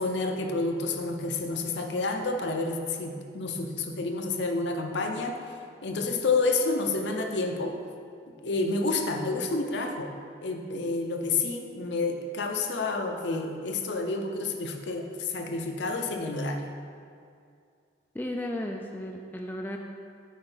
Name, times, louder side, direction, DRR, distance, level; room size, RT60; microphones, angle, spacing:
voice 1, 0.0-5.4 5.8-7.8 8.4-10.1 10.4-16.6, left 3 dB, 70° left, 4 dB, 0.6 m, -29 dB
voice 2, 18.1-19.8, left 1 dB, 10° left, 1 dB, 0.3 m, -34 dB
8.3 x 4.4 x 3.9 m, 2.3 s
head